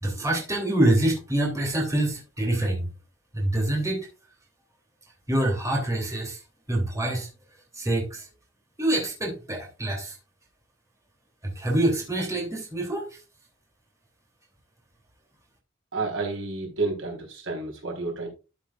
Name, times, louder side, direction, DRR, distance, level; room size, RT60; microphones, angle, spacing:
voice 1, 0.0-2.9 3.3-4.1 5.3-6.4 6.7-7.3 7.8-8.3 8.8-10.1 11.4-13.1, right 1 dB, 15° right, 3.1 m, -25 dB
voice 2, 15.9-18.3, right 3 dB, 75° right, 4.2 m, -30 dB
12.5 x 7.4 x 2.5 m
head